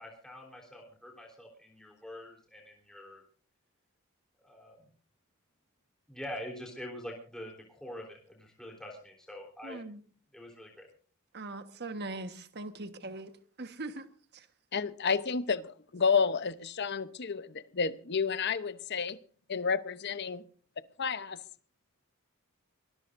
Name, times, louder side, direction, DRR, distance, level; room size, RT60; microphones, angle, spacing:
voice 1, 0.0-3.2 4.4-4.9 6.1-9.8 10.3-10.9, left 1 dB, 5° left, 3.6 m, -45 dB
voice 2, 9.6-10.0 11.3-13.3 13.6-14.1, right 2 dB, 50° right, 1.4 m, -40 dB
voice 3, 14.7-19.2 19.5-20.4 21.0-21.4, left 5 dB, 50° left, 0.8 m, -30 dB
23.5 x 20.0 x 2.6 m
head